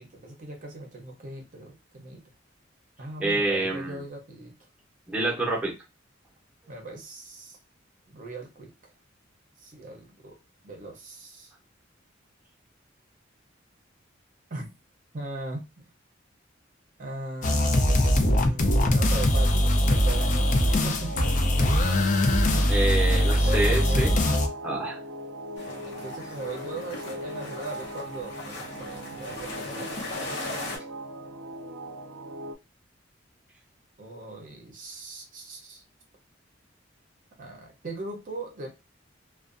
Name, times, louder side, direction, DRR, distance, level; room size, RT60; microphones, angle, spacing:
voice 1, 0.0-2.2 3.0-4.5 6.7-7.6 8.1-8.9 9.6-10.4 10.6-11.5 14.5-14.7 15.1-15.6 17.0-21.6 23.1-24.2 25.8-30.0 34.0-35.8 37.4-38.8, right 2 dB, 45° right, 1 dB, 0.6 m, -39 dB
voice 2, 3.2-4.0 5.1-5.7 22.6-24.2 24.6-25.0, right 2 dB, 5° right, -3 dB, 0.7 m, -27 dB
sound 1, 17.4-24.5, left 1 dB, 40° left, 0.4 m, -22 dB
sound 2, 19.9-32.6, right 1 dB, 85° right, 0.4 m, -39 dB
sound 3, 25.6-30.8, left 2 dB, 65° left, 0.8 m, -38 dB
2.4 x 2.2 x 2.4 m, 0.26 s
head